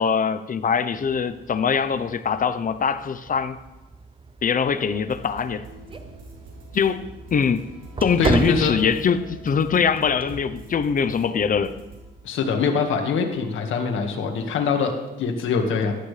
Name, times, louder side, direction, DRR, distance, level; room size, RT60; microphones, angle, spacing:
voice 1, 0.0-3.6 4.4-5.7 6.7-7.6 8.0-11.7, left 6 dB, 45° left, 12 dB, 0.8 m, -23 dB
sound 1, 0.9-11.8, right 4 dB, 25° right, 0.7 m, -35 dB
sound 2, 4.9-13.0, right 2 dB, 85° right, 3.4 m, -44 dB
voice 2, 8.2-8.7 12.2-14.9 15.2-16.0, left 5 dB, 80° left, 3 dB, 1.8 m, -23 dB
14.5 x 12.0 x 3.4 m, 1.1 s
cardioid pair, 90°, 20 cm